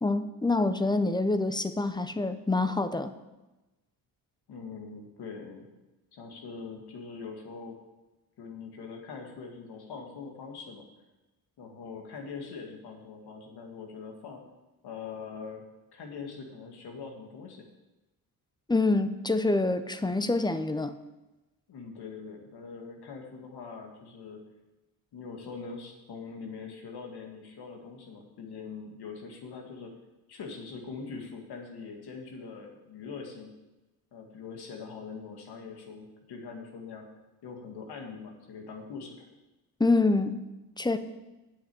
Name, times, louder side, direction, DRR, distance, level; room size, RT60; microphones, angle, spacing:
voice 1, 0.0-3.1 18.7-20.9 39.8-40.4 40.8-41.0, left 2 dB, 10° left, 11 dB, 0.7 m, -26 dB
voice 2, 4.5-5.7 6.1-7.8 8.4-10.8 11.6-14.4 14.8-15.6 15.9-17.6 21.7-24.4 25.1-29.9 30.3-33.5 34.1-37.1 37.4-39.3, left 5 dB, 75° left, 2 dB, 2.0 m, -42 dB
7.8 x 6.6 x 8.2 m, 1.1 s
cardioid pair, 85°, 39 cm